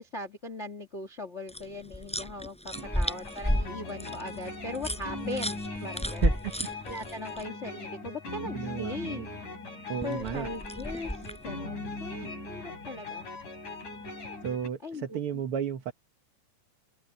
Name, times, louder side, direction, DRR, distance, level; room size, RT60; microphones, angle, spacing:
voice 1, 0.0-6.2 6.9-9.3 10.0-11.1 11.4-13.3 14.8-15.4, left 2 dB, 30° left, 1.4 m, -39 dB
sound 1, 1.5-7.4 10.0-11.5, equal, ahead, 5.6 m, -32 dB
sound 2, 2.7-14.7, left 2 dB, 60° left, 9.0 m, -40 dB
voice 2, 6.2-6.5 8.5-9.3 9.9-10.5 14.4-15.9, right 8 dB, 60° right, 1.6 m, -33 dB
open air
omnidirectional pair, 3.9 m